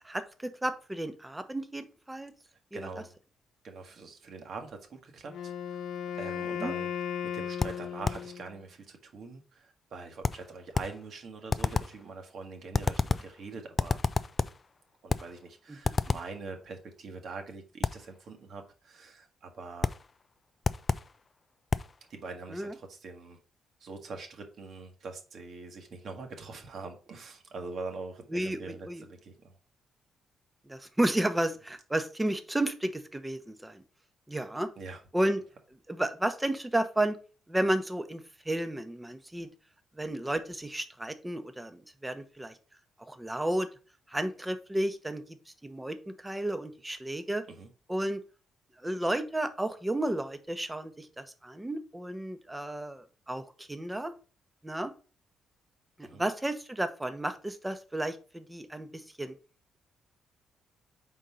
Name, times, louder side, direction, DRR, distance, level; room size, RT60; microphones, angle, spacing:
voice 1, 0.0-2.3 2.7-2.9 6.5-6.7 15.7-15.8 22.5-22.7 28.3-29.0 30.7-33.8 34.3-34.7 35.1-35.4 35.9-37.2 37.5-39.5 40.0-42.6 43.0-43.7 44.1-45.4 45.6-47.5 47.9-48.2 48.8-54.1 54.6-54.9 56.0-59.3, right 1 dB, 10° right, 0.8 m, -32 dB
voice 2, 2.7-3.1 3.6-5.8 6.2-6.9 7.2-14.0 15.0-19.9 22.1-23.4 23.8-29.6 34.8-35.0 47.5-47.7 56.0-56.2, right 4 dB, 60° right, 1.3 m, -43 dB
Wind instrument woodwind instrument, 5.3-8.6, left 8 dB, 80° left, 0.8 m, -36 dB
sound 1, 7.6-8.3 10.2-11.0 11.5-12.0 12.7-13.4 13.8-14.6 15.1-15.4 15.8-16.4 17.8-18.1 19.8-20.1 20.6-21.2 21.7-22.0, left 4 dB, 35° left, 0.3 m, -30 dB
4.4 x 3.9 x 5.5 m
cardioid pair, 90°, 0 cm